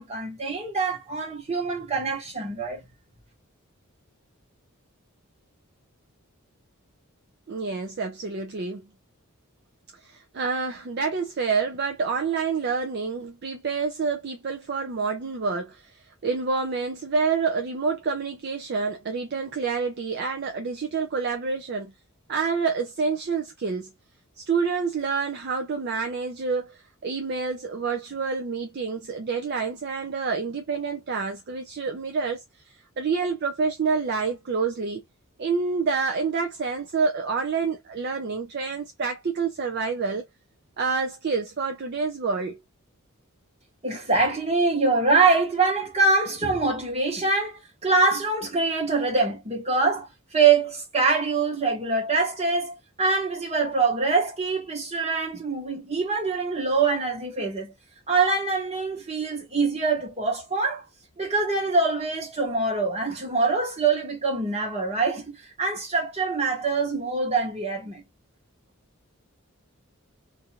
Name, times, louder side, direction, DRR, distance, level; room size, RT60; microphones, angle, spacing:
voice 1, 0.0-2.8 43.8-57.7 58.1-60.8 61.2-68.0, right 4 dB, 30° right, 1.2 m, -24 dB
voice 2, 7.5-8.8 10.0-15.9 16.2-21.9 22.3-23.9 24.5-32.4 33.0-35.0 35.4-40.2 40.8-42.6, right 5 dB, 50° right, 0.5 m, -28 dB
2.6 x 2.4 x 2.8 m
head